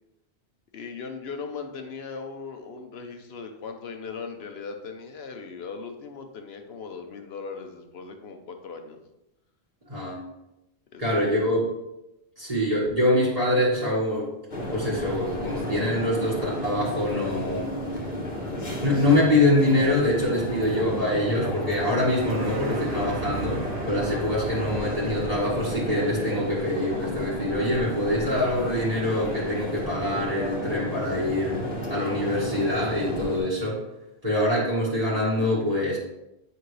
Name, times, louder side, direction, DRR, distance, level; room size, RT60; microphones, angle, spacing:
voice 1, 0.7-9.0 10.9-11.2, left 5 dB, 70° left, 6 dB, 1.1 m, -38 dB
voice 2, 11.0-11.7 12.4-14.3 14.7-17.7 18.8-31.6 31.9-33.8 34.2-36.0, left 1 dB, 35° right, -8 dB, 1.8 m, -25 dB
sound 1, 14.5-33.4, equal, 45° left, 1.3 m, -32 dB
sound 2, 21.8-25.5, right 5 dB, 90° right, 1.2 m, -37 dB
9.4 x 5.0 x 3.2 m, 0.91 s
omnidirectional pair, 1.1 m